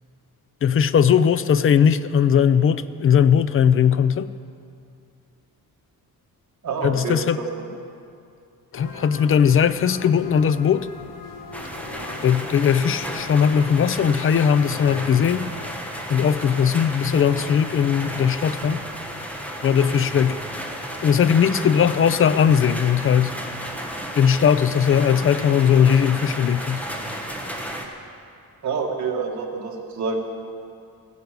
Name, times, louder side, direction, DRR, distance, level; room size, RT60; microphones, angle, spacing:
voice 1, 0.6-4.3 6.8-7.4 8.7-10.9 12.2-15.5 16.1-18.8 19.6-20.4 21.0-23.4 24.1-26.8, left 8 dB, 40° left, 14 dB, 0.4 m, -19 dB
voice 2, 6.6-7.5 28.6-30.2, right 4 dB, 55° right, 0 dB, 2.0 m, -27 dB
sound 1, 8.7-15.7, left 4 dB, 65° left, 1.3 m, -40 dB
sound 2, 11.5-27.8, equal, 5° left, 1.2 m, -33 dB
15.5 x 10.5 x 6.7 m, 2.5 s
wide cardioid pair, 165°, 35 cm